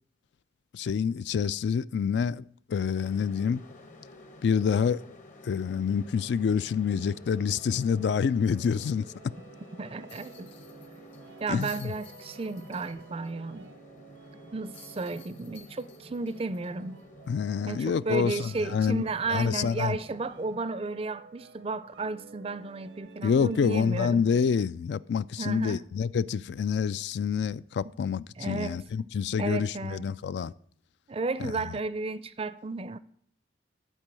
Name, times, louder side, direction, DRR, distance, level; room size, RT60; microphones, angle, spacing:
voice 1, 0.7-3.6 4.4-5.0 5.4-9.3 11.5-11.9 17.3-19.0 19.3-20.0 23.2-30.5 31.4-31.5, left 6 dB, 70° left, 0.3 m, -27 dB
sound 1, 2.9-20.6, left 2 dB, 45° left, 1.0 m, -52 dB
sound 2, 6.7-24.4, right 5 dB, 80° right, 0.7 m, -53 dB
voice 2, 9.8-10.5 11.4-13.7 14.5-17.0 17.7-24.3 25.4-25.8 28.4-29.1 29.4-30.1 31.1-33.0, right 3 dB, 30° right, 0.4 m, -33 dB
sound 3, 10.1-13.3 13.6-13.7 14.7-17.4 17.8-17.9 20.1-20.3, left 8 dB, 85° left, 1.9 m, -54 dB
12.0 x 4.5 x 7.5 m
head